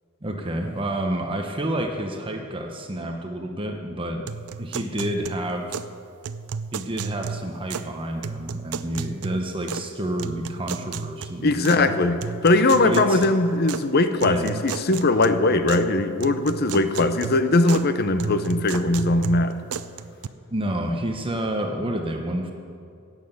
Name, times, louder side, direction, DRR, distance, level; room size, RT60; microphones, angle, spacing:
voice 1, 0.2-4.2 4.6-5.8 6.7-11.9 12.8-13.2 14.2-14.6 20.5-22.5, right 1 dB, 25° right, 3 dB, 0.9 m, -29 dB
sound 1, 4.3-5.9 6.2-7.9 8.2-9.9 10.2-11.8 12.2-13.8 14.2-15.9 16.2-17.9 18.2-20.3, right 6 dB, 90° right, 0.5 m, -34 dB
voice 2, 11.4-12.2 12.4-19.6, left 2 dB, 45° left, 10 dB, 0.7 m, -20 dB
11.5 x 8.9 x 7.9 m, 2.4 s
head